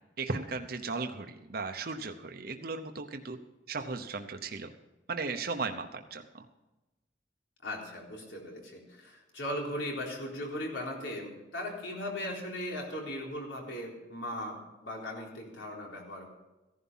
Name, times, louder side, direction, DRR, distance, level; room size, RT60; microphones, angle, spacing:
voice 1, 0.2-3.4 3.7-4.7 5.1-6.4, right 4 dB, 55° right, 5 dB, 0.9 m, -36 dB
voice 2, 7.6-16.3, left 1 dB, 80° left, -1 dB, 4.0 m, -38 dB
15.5 x 11.0 x 5.7 m, 1.0 s
head